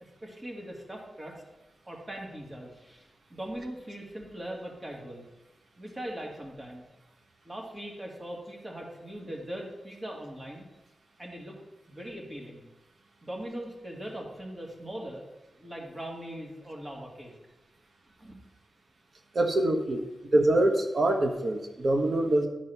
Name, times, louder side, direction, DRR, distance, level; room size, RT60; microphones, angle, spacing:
voice 1, 0.2-1.4 1.8-5.2 5.8-6.8 7.4-10.6 11.2-11.6 11.9-12.7 13.2-15.2 15.5-17.3 18.2-18.4, right 1 dB, 25° right, -1 dB, 2.4 m, -40 dB
voice 2, 19.3-20.0 20.3-22.5, right 1 dB, 60° right, 4 dB, 1.3 m, -24 dB
11.5 x 4.6 x 6.0 m, 1.0 s
wide cardioid pair, 90°, 0 cm